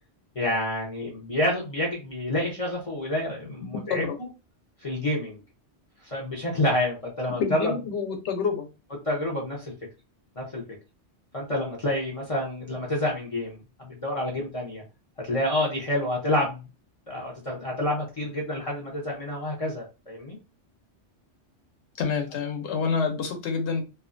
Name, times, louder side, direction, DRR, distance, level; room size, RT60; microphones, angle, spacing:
voice 1, 0.4-4.3 4.8-5.4 6.0-7.7 9.0-9.7 10.4-10.6 11.3-14.8 15.2-16.6 17.1-20.4, left 1 dB, 40° left, 0.5 m, -28 dB
voice 2, 7.3-8.7 22.0-23.8, left 5 dB, 70° left, 0.9 m, -27 dB
2.5 x 2.2 x 2.4 m
omnidirectional pair, 1.3 m